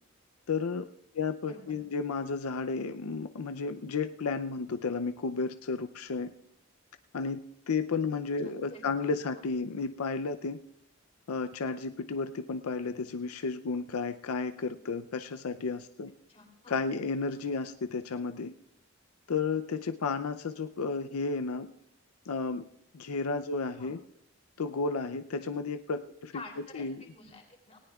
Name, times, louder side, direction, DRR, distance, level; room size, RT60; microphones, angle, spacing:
voice 1, 0.5-0.9 1.1-6.3 7.1-7.4 7.7-10.6 11.3-16.1 16.7-18.5 19.3-21.7 22.3-22.6 22.9-24.0 24.6-26.4 26.7-27.0, left 4 dB, 90° left, 9 dB, 0.5 m, -32 dB
voice 2, 1.4-1.8 8.4-9.2 16.3-16.7 23.8-23.9 26.3-27.8, left 3 dB, 30° left, 1 dB, 3.1 m, -49 dB
18.5 x 18.0 x 2.4 m, 0.76 s
head